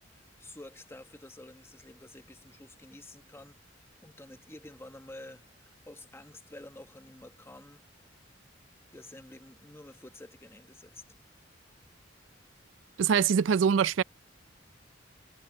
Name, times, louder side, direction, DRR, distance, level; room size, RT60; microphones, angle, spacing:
voice 1, 0.1-7.8 8.9-11.2, left 1 dB, 15° left, 1.1 m, -50 dB
voice 2, 13.0-14.0, right 7 dB, 80° right, 0.4 m, -24 dB
head